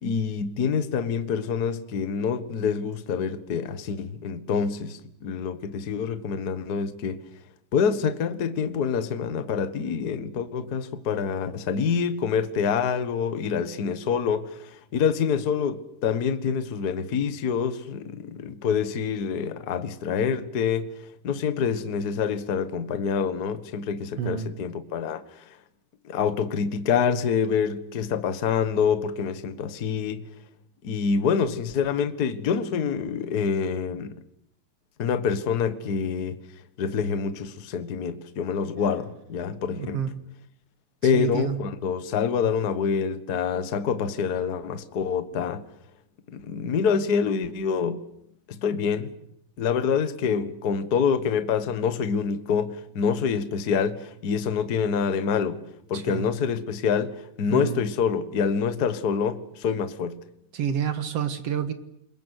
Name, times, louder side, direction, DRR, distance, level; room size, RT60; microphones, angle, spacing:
voice 1, 0.0-7.2 7.7-20.9 21.2-25.2 26.0-30.2 30.8-34.1 35.0-36.4 36.8-40.0 41.0-45.6 46.3-48.0 48.6-49.1 49.6-55.6 55.9-60.2, left 6 dB, 80° left, 0.8 m, -26 dB
voice 2, 24.2-24.5 39.8-40.1 41.1-41.6 55.9-56.3 57.5-57.8 60.5-61.7, right 8 dB, 55° right, 2.0 m, -28 dB
28.0 x 22.0 x 8.1 m
omnidirectional pair, 4.2 m